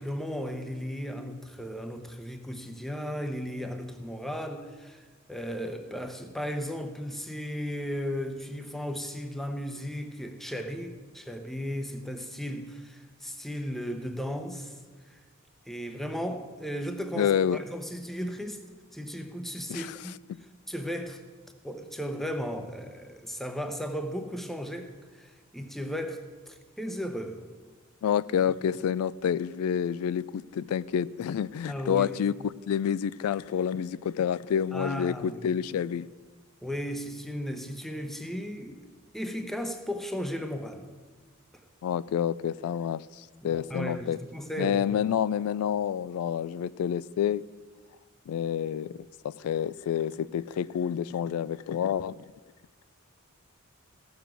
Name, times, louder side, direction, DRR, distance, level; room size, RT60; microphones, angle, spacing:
voice 1, 0.0-14.8 15.1-15.2 15.7-18.6 18.9-20.2 20.7-21.2 21.6-27.4 31.7-32.2 34.7-35.4 36.6-38.8 39.1-40.9 43.4-45.0, equal, ahead, 6 dB, 0.8 m, -35 dB
voice 2, 17.2-17.6 19.7-20.0 28.0-32.3 32.7-36.1 41.8-44.2 44.6-47.4 48.3-52.2, left 8 dB, 80° left, 17 dB, 0.3 m, -28 dB
15.0 x 7.1 x 6.2 m, 1.4 s
head